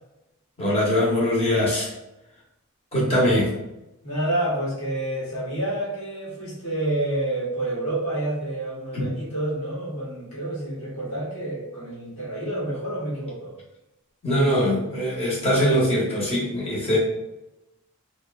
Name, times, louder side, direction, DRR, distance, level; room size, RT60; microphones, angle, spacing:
voice 1, 0.6-1.9 2.9-3.5 8.9-9.1 14.2-17.0, equal, 30° left, -6 dB, 0.9 m, -22 dB
voice 2, 4.0-13.6, right 1 dB, 70° left, -8 dB, 1.1 m, -28 dB
2.7 x 2.2 x 2.4 m, 0.95 s
head